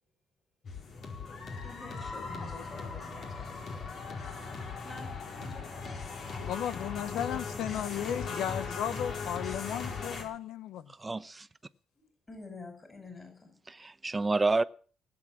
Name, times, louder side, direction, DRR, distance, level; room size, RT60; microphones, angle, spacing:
sound 1, 0.6-10.2, left 4 dB, 60° left, 4.5 m, -39 dB
voice 1, 1.5-6.6 7.0-8.8 12.3-13.5, left 3 dB, 25° left, 5.2 m, -49 dB
voice 2, 6.5-10.9, left 10 dB, 85° left, 0.7 m, -35 dB
voice 3, 11.0-11.5 13.7-14.6, right 3 dB, 20° right, 0.9 m, -29 dB
18.5 x 8.0 x 7.5 m
cardioid pair, 90°, 0 cm